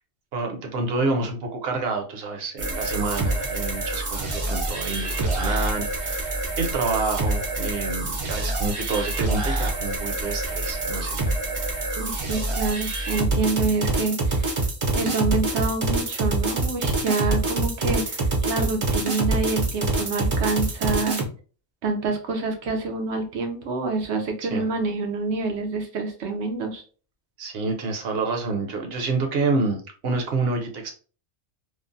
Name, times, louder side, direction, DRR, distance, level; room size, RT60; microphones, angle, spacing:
voice 1, 0.3-11.2 24.4-24.7 27.4-29.8 30.0-30.9, right 3 dB, 65° right, 3 dB, 0.9 m, -28 dB
sound 1, 2.6-21.2, right 2 dB, 40° right, 0.5 m, -26 dB
voice 2, 12.0-14.6 14.9-21.2 21.8-26.8, right 3 dB, 90° right, 4 dB, 1.0 m, -27 dB
3.1 x 2.0 x 2.5 m, 0.39 s
omnidirectional pair, 1.1 m